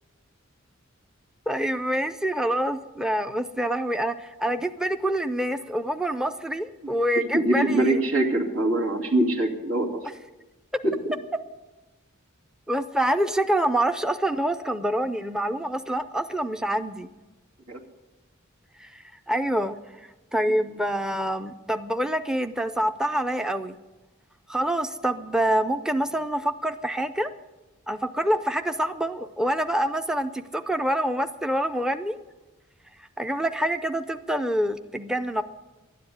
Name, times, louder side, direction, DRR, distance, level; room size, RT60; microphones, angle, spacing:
voice 1, 1.5-8.0 10.7-10.8 11.3-11.4 12.7-17.1 18.8-19.7 20.3-23.8 24.5-27.3 27.9-32.2 33.2-35.4, right 1 dB, 5° right, 9 dB, 0.4 m, -26 dB
voice 2, 7.3-10.0 10.8-10.9 17.7-17.8, right 1 dB, 85° right, 0 dB, 2.5 m, -23 dB
12.0 x 10.0 x 9.7 m, 1.1 s
head